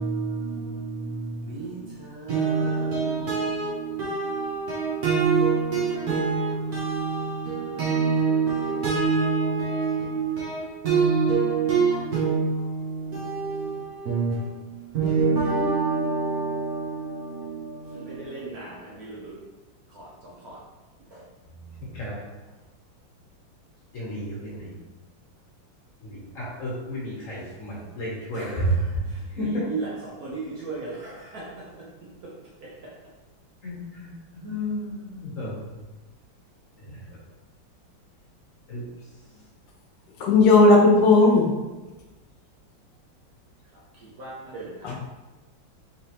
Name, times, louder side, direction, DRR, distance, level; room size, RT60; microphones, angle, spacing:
voice 1, 0.0-19.3 19.9-20.6 21.1-21.2 28.3-31.9 32.2-32.3 32.6-32.9 44.0-44.9, right 5 dB, 60° right, 1.1 m, -27 dB
voice 2, 21.9-22.3 23.9-24.7 26.0-29.0 29.4-29.6 33.6-35.8 36.8-37.0 38.7-38.8, right 1 dB, 50° left, 1.1 m, -31 dB
voice 3, 40.2-41.5 44.8-44.9, left 3 dB, 75° left, 1.2 m, -15 dB
4.1 x 3.3 x 2.8 m
omnidirectional pair, 2.1 m